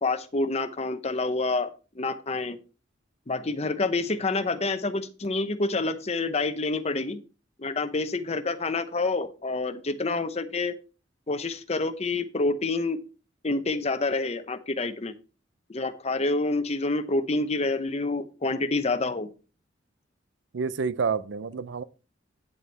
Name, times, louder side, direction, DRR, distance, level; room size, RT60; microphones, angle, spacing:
voice 1, 0.0-2.6 3.3-7.2 7.6-10.7 11.3-13.0 13.4-15.1 15.7-19.3, left 3 dB, 35° left, 0.7 m, -28 dB
voice 2, 20.5-21.8, right 5 dB, 70° right, 0.5 m, -28 dB
9.4 x 8.1 x 3.3 m
head